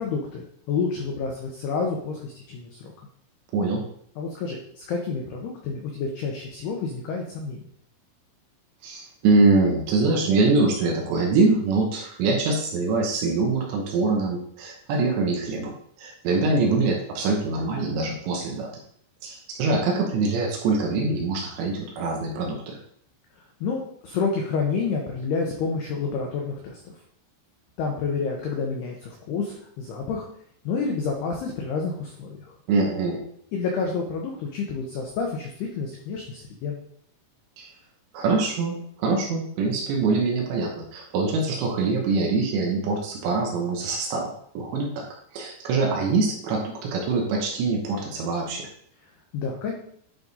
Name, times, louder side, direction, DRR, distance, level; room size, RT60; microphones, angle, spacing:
voice 1, 0.0-2.9 4.2-7.6 23.6-26.8 27.8-30.3 30.7-32.4 33.5-36.8 49.3-49.7, left 5 dB, 85° left, 0 dB, 2.3 m, -29 dB
voice 2, 3.5-3.9 8.8-18.7 19.2-22.8 32.7-33.2 37.6-37.7 38.1-45.1 45.3-48.6, right 3 dB, 75° right, 0 dB, 2.9 m, -24 dB
10.5 x 3.7 x 4.0 m, 0.66 s
omnidirectional pair, 5.9 m